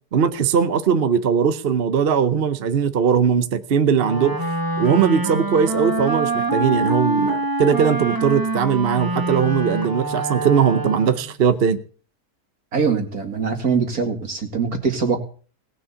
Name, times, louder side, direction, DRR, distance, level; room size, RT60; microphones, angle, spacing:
voice 1, 0.1-4.4 4.8-11.8, right 7 dB, 45° right, 0.9 m, -19 dB
Wind instrument woodwind instrument, 4.0-11.4, right 2 dB, 15° right, 1.1 m, -25 dB
voice 2, 12.7-15.2, right 5 dB, 65° right, 2.9 m, -22 dB
18.5 x 6.4 x 8.3 m
omnidirectional pair, 1.7 m